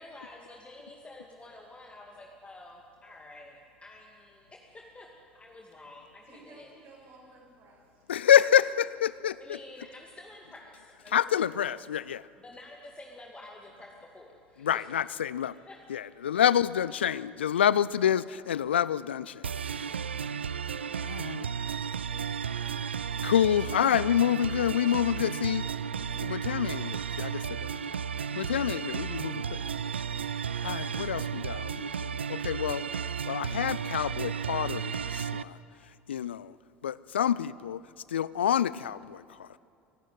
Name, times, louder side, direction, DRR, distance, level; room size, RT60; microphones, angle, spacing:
voice 1, 0.0-5.1 5.3-6.7 9.4-11.5 12.4-15.1 15.7-15.8, left 2 dB, 20° left, 0 dB, 2.4 m, -49 dB
voice 2, 6.2-8.1 8.6-9.1, right 2 dB, 55° right, -2 dB, 6.6 m, -55 dB
voice 3, 8.1-9.3 11.1-12.2 14.6-15.5 15.9-19.4 21.0-21.5 23.2-25.6 26.0-27.7 28.4-29.6 30.6-32.8 33.3-35.6 36.1-36.5 36.8-37.8 38.1-39.6, left 10 dB, 80° left, 19 dB, 0.4 m, -27 dB
sound 1, 19.4-35.4, right 7 dB, 85° right, 0.4 m, -34 dB
24.0 x 13.0 x 9.3 m, 2.5 s
figure-of-eight pair, 65°, 6 cm